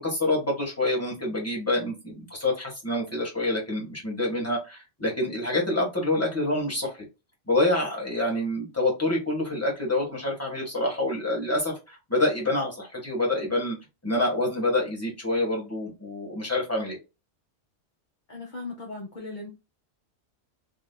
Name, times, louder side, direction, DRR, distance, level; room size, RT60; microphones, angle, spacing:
voice 1, 0.0-7.0 7.5-13.8 14.0-17.0, left 2 dB, 10° left, -2 dB, 1.4 m, -27 dB
voice 2, 18.3-19.5, left 3 dB, 40° left, 0 dB, 1.0 m, -37 dB
3.5 x 3.0 x 2.2 m, 0.26 s
omnidirectional pair, 1.4 m